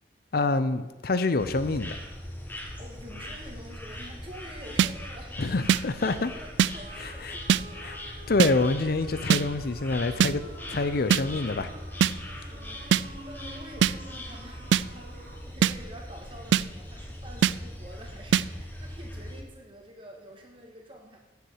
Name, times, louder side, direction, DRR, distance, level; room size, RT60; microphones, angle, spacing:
voice 1, 0.3-2.0 5.4-6.3 7.0-7.4 7.8-8.0 8.3-10.4 10.7-11.7, left 3 dB, 55° left, 12 dB, 0.6 m, -26 dB
sound 1, 1.4-19.4, left 1 dB, 10° left, 1.3 m, -41 dB
voice 2, 2.8-5.4 6.0-7.9 12.4-21.2, equal, 30° right, 1 dB, 1.9 m, -48 dB
sound 2, 4.8-4.9 5.7-5.8 6.6-6.7 7.5-7.6 8.4-8.5 9.3-9.4 10.2-10.3 11.1-11.2 12.0-12.1 12.9-13.0 13.8-13.9 14.7-14.8 15.6-15.7 16.5-16.6 17.4-17.5 18.3-18.4, right 8 dB, 80° right, 0.3 m, -20 dB
sound 3, 6.7-15.4, right 1 dB, 65° right, 2.4 m, -48 dB
7.8 x 7.0 x 8.0 m, 1.1 s
head